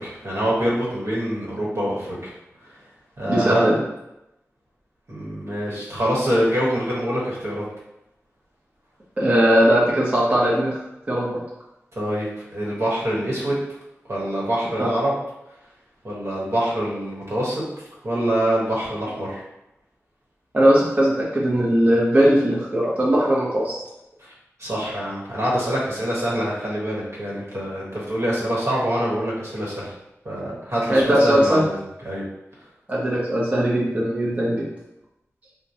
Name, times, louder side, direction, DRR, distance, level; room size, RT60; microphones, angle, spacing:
voice 1, 0.0-2.3 2.6-2.7 3.2-3.7 5.1-7.6 11.9-13.6 14.1-15.2 16.0-17.6 18.0-19.4 24.2-24.3 24.6-29.9 30.2-31.8 32.0-32.2, right 1 dB, 65° right, -5 dB, 1.1 m, -25 dB
voice 2, 3.3-3.8 9.2-10.7 11.1-11.4 14.8-14.9 20.5-23.8 30.9-31.6 32.9-34.6, equal, 30° right, -7 dB, 0.8 m, -19 dB
4.4 x 2.2 x 2.7 m, 0.88 s
wide cardioid pair, 85°, 5 cm